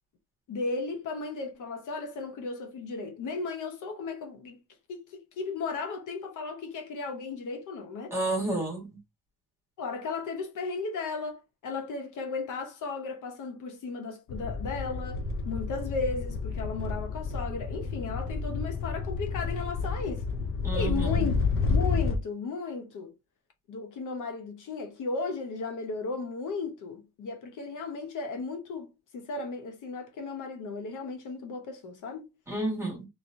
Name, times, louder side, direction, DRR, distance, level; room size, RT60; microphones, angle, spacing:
voice 1, 0.5-4.6 4.9-8.2 9.8-20.3 20.7-21.4 21.7-23.1 23.7-32.3, left 4 dB, 50° left, 0.8 m, -35 dB
voice 2, 8.1-9.0 20.6-21.2 32.5-33.1, right 2 dB, 5° right, 1.5 m, -31 dB
sound 1, 14.3-22.2, left 4 dB, 35° left, 0.4 m, -30 dB
3.1 x 3.0 x 2.5 m
cardioid pair, 150°, 40 cm